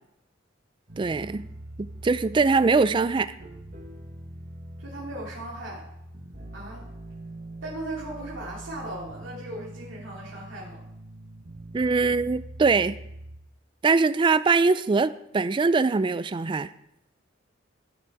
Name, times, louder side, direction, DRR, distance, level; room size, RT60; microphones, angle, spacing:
sound 1, 0.9-13.4, right 1 dB, 45° right, 1.5 m, -43 dB
voice 1, 1.0-1.5 1.8-3.3 11.7-13.0 13.8-16.7, right 4 dB, 25° right, 14 dB, 0.3 m, -22 dB
voice 2, 4.8-5.9 6.5-6.9 7.6-10.8, right 1 dB, 80° right, -7 dB, 2.7 m, -37 dB
13.5 x 6.1 x 4.7 m, 0.79 s
head